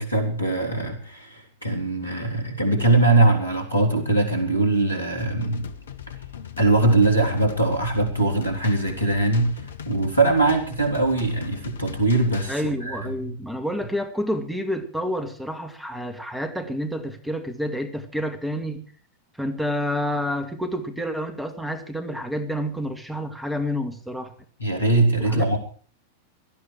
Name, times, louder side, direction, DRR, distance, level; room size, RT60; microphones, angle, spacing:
voice 1, 0.0-5.7 6.6-13.3 24.6-25.6, right 2 dB, 85° left, 4 dB, 3.6 m, -21 dB
sound 1, 5.2-12.6, left 9 dB, 65° left, 1.1 m, -39 dB
voice 2, 12.5-18.8 19.4-24.3 25.2-25.6, equal, 5° right, 7 dB, 2.2 m, -29 dB
18.0 x 13.0 x 4.7 m, 0.41 s
figure-of-eight pair, 90°, 0 cm